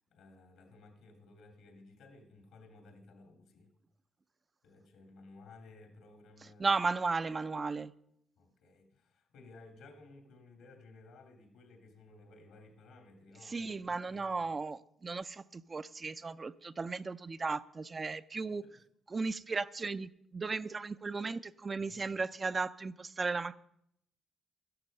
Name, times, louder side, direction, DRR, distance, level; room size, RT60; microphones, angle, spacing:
voice 1, 0.1-3.7 4.6-6.7 8.4-14.3 18.4-18.8 21.8-22.1, left 3 dB, 80° left, 2.6 m, -57 dB
voice 2, 6.6-7.9 13.4-18.6 19.1-23.5, right 4 dB, 30° right, 0.4 m, -35 dB
13.0 x 11.5 x 5.3 m
cardioid pair, 90°, 0 cm